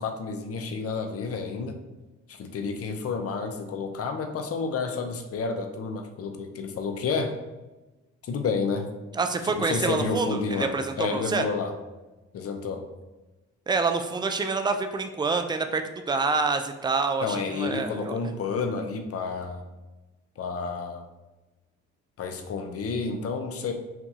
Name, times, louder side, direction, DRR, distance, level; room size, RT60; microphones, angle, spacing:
voice 1, 0.0-1.8 2.3-7.3 8.2-8.9 9.5-11.7 12.3-12.8 17.2-19.6 20.4-21.1 22.2-23.7, left 4 dB, 50° left, 5 dB, 0.6 m, -30 dB
voice 2, 9.1-11.5 13.7-18.2, right 4 dB, 15° right, 7 dB, 0.4 m, -27 dB
5.9 x 2.3 x 2.7 m, 1.1 s
cardioid pair, 90°, 30 cm